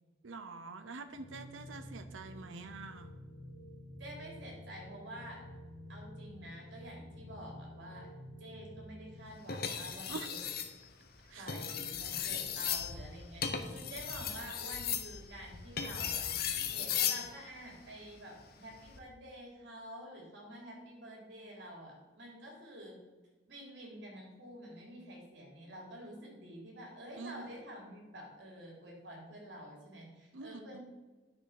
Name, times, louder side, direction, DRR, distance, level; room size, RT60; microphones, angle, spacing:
voice 1, 0.2-3.1 10.1-10.3 11.3-11.4 27.2-27.4 30.3-30.8, right 4 dB, 85° right, 8 dB, 0.8 m, -45 dB
sound 1, 1.1-9.2, left 1 dB, 65° left, 2.3 m, -50 dB
voice 2, 4.0-5.4 5.9-8.1 8.4-10.4 11.3-16.3 16.7-23.0 23.5-30.8, equal, 65° right, -1 dB, 3.7 m, -49 dB
sound 2, 9.5-10.7 11.4-17.3 18.7-19.0, left 8 dB, 50° left, 1.0 m, -36 dB
9.7 x 7.0 x 5.9 m, 1.2 s
head